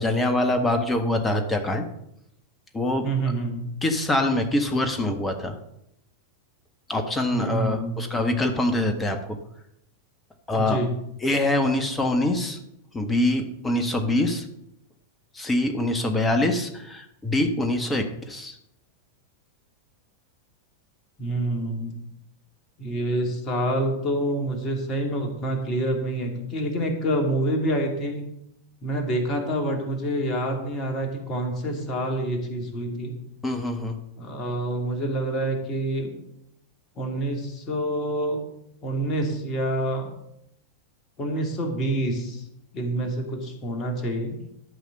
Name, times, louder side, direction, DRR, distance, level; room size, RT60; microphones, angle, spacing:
voice 1, 0.0-1.8 2.7-3.1 3.8-5.5 6.9-9.2 10.5-10.8 11.2-12.6 12.9-14.5 15.3-18.6 33.4-34.0, left 1 dB, 15° left, 6 dB, 1.5 m, -24 dB
voice 2, 3.0-3.7 7.3-8.1 10.6-10.9 21.2-21.9 22.8-28.3 28.8-33.1 34.2-36.1 37.0-38.4 38.8-40.1 41.2-42.4 42.7-44.4, right 1 dB, 30° left, 3 dB, 2.7 m, -27 dB
12.5 x 5.7 x 6.6 m, 0.79 s
figure-of-eight pair, 90°, 0 cm